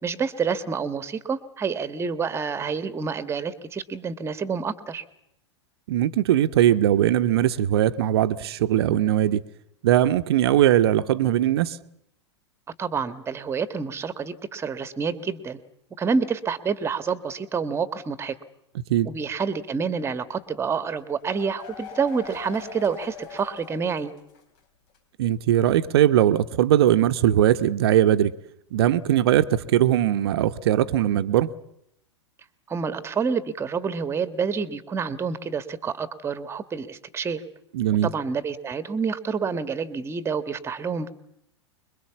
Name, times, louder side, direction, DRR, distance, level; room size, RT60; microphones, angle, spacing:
voice 1, 0.0-5.0 12.8-15.6 16.0-18.3 19.0-24.1 32.7-37.4 38.0-41.1, right 5 dB, 15° right, 1.6 m, -28 dB
voice 2, 5.9-9.4 9.8-11.8 18.9-19.1 25.2-28.3 28.7-31.5 37.7-38.1, right 12 dB, 55° right, 1.0 m, -20 dB
sound 1, 21.0-24.6 24.9-25.0 25.3-25.4, left 7 dB, 45° left, 4.1 m, -42 dB
25.5 x 22.5 x 7.2 m
figure-of-eight pair, 95°, 15 cm